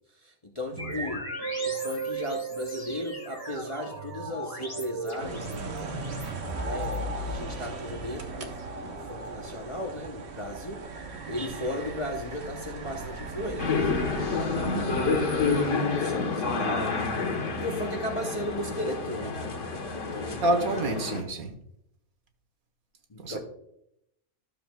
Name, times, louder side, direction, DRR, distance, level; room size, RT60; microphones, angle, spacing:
voice 1, 0.2-1.2 1.6-5.8 6.6-10.8 11.3-13.9 14.6-15.2 15.6-17.1 17.4-19.7 20.1-20.4 23.1-23.4, left 1 dB, 30° left, 1 dB, 0.6 m, -36 dB
sound 1, 0.8-8.0, right 2 dB, 15° left, 1.7 m, -36 dB
sound 2, 5.2-15.6, right 3 dB, 55° right, 1.0 m, -38 dB
sound 3, 13.6-21.2, left 4 dB, 60° left, 1.5 m, -29 dB
voice 2, 20.4-21.5 23.2-23.4, right 1 dB, 80° right, 5 dB, 1.6 m, -28 dB
13.0 x 6.9 x 2.2 m, 0.79 s
omnidirectional pair, 1.5 m